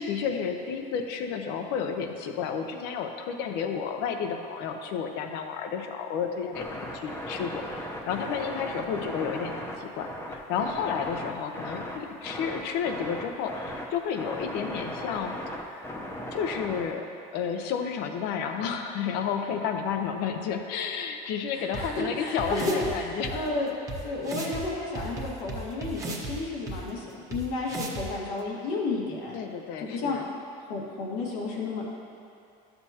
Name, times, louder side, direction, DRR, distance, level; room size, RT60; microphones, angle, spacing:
voice 1, 0.0-15.8 16.3-17.1 17.3-23.3 29.3-30.3, left 7 dB, 70° left, 5 dB, 0.7 m, -31 dB
sound 1, 6.5-16.9, left 1 dB, 15° left, 0.8 m, -37 dB
voice 2, 21.5-23.7 24.0-29.4 29.8-30.2 30.7-31.9, left 3 dB, 90° left, -3 dB, 1.7 m, -32 dB
sound 2, 21.7-21.8 22.4-22.9 23.2-23.3 23.9-24.0 24.2-24.6 24.9-26.3 26.7-26.8 27.3-27.4 27.7-28.0, right 3 dB, 20° right, 1.0 m, -35 dB
11.5 x 6.9 x 2.8 m, 2.6 s
cardioid pair, 145°, 18 cm